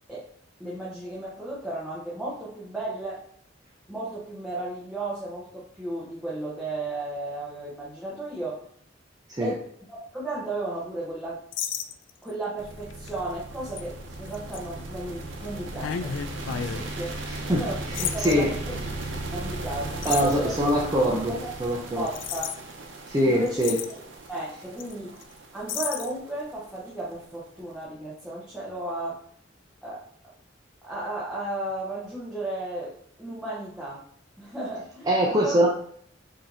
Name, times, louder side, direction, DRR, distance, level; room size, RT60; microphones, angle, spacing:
voice 1, 0.6-3.2 3.9-8.6 9.4-11.4 12.2-16.2 16.5-17.1 17.5-18.8 19.3-20.6 21.2-21.5 22.0-22.5 23.2-23.6 24.3-25.1 25.5-29.2 29.8-30.0 30.8-34.0 34.4-35.7, right 2 dB, 5° right, -8 dB, 0.9 m, -34 dB
sound 1, 11.5-12.3 12.9-13.1 13.8-13.9 14.3-14.6 15.8-16.8 17.9-18.3 20.0-20.4 22.1-22.6 23.2-23.3 23.5-24.0 24.8-24.9 25.2-25.3 25.7-26.1, left 8 dB, 80° left, 0.3 m, -32 dB
sound 2, 12.6-27.7, right 2 dB, 85° right, 0.7 m, -37 dB
voice 2, 17.9-18.5 20.0-21.3 21.6-22.1 23.1-23.8 35.1-35.7, equal, 20° right, -3 dB, 0.5 m, -23 dB
4.9 x 2.8 x 2.6 m, 0.62 s
head